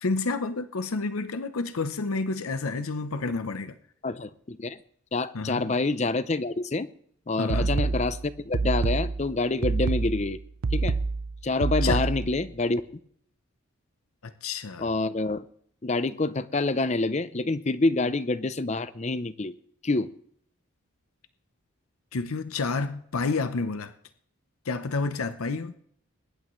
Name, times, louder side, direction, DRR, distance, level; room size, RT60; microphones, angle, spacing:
voice 1, 0.0-3.8 5.3-5.7 7.4-7.7 11.8-12.0 14.2-14.8 22.1-23.9 24.7-25.7, left 3 dB, 80° left, 0.7 m, -29 dB
voice 2, 4.0-4.8 5.1-6.9 7.3-8.2 8.5-10.4 10.7-11.0 11.4-12.8 14.8-15.5 15.8-19.5 19.8-20.1, left 3 dB, 30° left, 0.5 m, -27 dB
sound 1, 7.5-12.5, right 4 dB, 90° right, 0.6 m, -27 dB
21.5 x 11.0 x 3.1 m
head